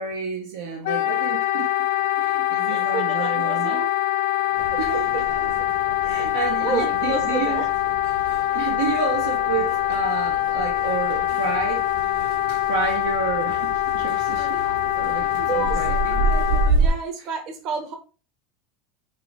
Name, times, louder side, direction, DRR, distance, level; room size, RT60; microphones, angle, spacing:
voice 1, 0.0-1.7 2.2-3.8 4.8-5.3 6.0-7.6 8.5-11.9 12.7-14.6 14.9-16.3, right 5 dB, 90° right, 0.8 m, -30 dB
Wind instrument woodwind instrument, 0.8-16.7, left 14 dB, 80° left, 0.5 m, -24 dB
voice 2, 2.1-3.9 4.4-4.8 6.6-7.7 15.5-15.8 16.8-17.9, right 5 dB, 45° right, 0.9 m, -30 dB
sound 1, 4.6-16.9, right 3 dB, 75° right, 1.4 m, -29 dB
5.5 x 2.6 x 3.5 m
supercardioid pair, 135°, 0 cm